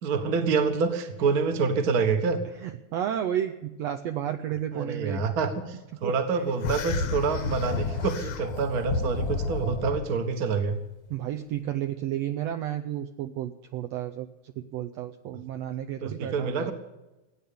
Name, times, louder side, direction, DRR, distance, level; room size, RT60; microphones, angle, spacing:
voice 1, 0.0-2.4 4.7-10.8 15.3-15.4 16.0-16.7, right 5 dB, 45° right, 8 dB, 1.3 m, -27 dB
voice 2, 2.6-5.2 6.0-6.1 9.0-9.1 11.1-16.7, right 11 dB, 75° right, 7 dB, 1.6 m, -32 dB
sound 1, 6.6-10.0, left 4 dB, 60° left, 2.0 m, -30 dB
16.0 x 9.3 x 8.5 m, 1.0 s
omnidirectional pair, 3.5 m